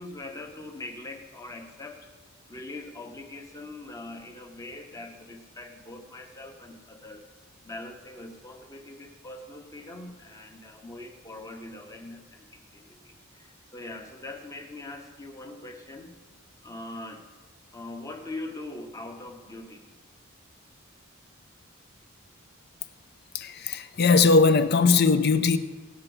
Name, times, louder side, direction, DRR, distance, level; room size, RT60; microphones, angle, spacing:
voice 1, 0.0-2.1 2.5-7.2 7.6-16.2 16.6-17.3 17.7-19.9, left 2 dB, 15° left, 1.1 m, -42 dB
voice 2, 23.3-25.6, left 4 dB, 50° left, 0.6 m, -20 dB
17.5 x 7.0 x 5.4 m
head